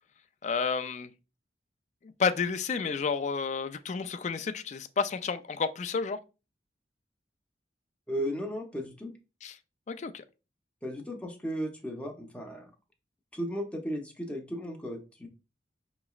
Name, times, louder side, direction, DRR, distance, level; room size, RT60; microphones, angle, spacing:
voice 1, 0.4-1.1 2.2-6.2 9.4-9.5 9.9-10.2, left 5 dB, 40° left, 0.3 m, -30 dB
voice 2, 8.1-9.1 10.8-12.7 13.3-15.3, equal, 5° left, 0.7 m, -35 dB
5.9 x 3.0 x 2.3 m
head